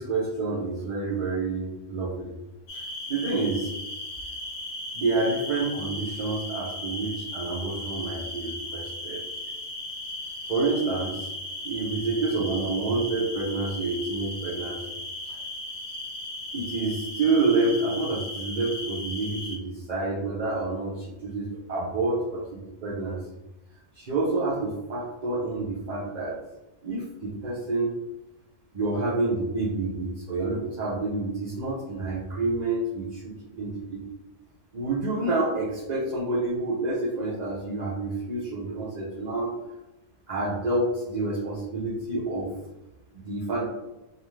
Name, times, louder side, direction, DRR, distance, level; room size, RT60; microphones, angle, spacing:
voice 1, 0.0-2.3 2.7-2.8 3.1-3.7 4.9-9.2 10.5-11.3 11.6-15.0 15.3-15.4 16.5-23.2 24.0-26.4 26.8-27.9 28.7-34.0 34.7-39.5 40.3-42.5 43.2-43.6, right 3 dB, 50° right, -7 dB, 0.6 m, -28 dB
sound 1, 2.7-19.6, left 1 dB, 75° left, 1.0 m, -36 dB
2.4 x 2.4 x 3.0 m, 0.97 s
omnidirectional pair, 1.3 m